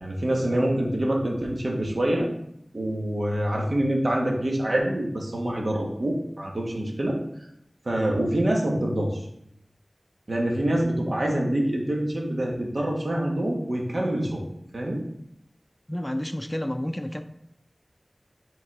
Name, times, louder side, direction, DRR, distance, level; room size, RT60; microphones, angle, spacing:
voice 1, 0.0-2.3 2.7-7.2 7.8-9.2 10.3-14.4 14.7-15.0, right 1 dB, 75° right, -1 dB, 1.4 m, -26 dB
voice 2, 15.9-17.2, left 1 dB, 15° left, 8 dB, 0.4 m, -30 dB
6.3 x 3.9 x 4.7 m, 0.74 s
wide cardioid pair, 45°, 0 cm